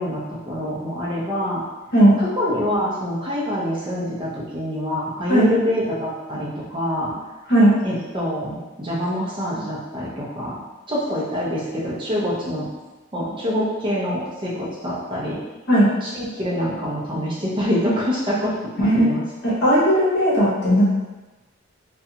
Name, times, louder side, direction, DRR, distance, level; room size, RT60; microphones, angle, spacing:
voice 1, 0.0-1.6 2.2-7.1 7.8-10.6 10.9-12.7 13.1-15.4 16.0-19.2, equal, 25° right, -7 dB, 0.6 m, -25 dB
voice 2, 19.4-20.8, right 1 dB, 55° left, -8 dB, 1.0 m, -16 dB
2.5 x 2.2 x 2.8 m, 1.1 s
head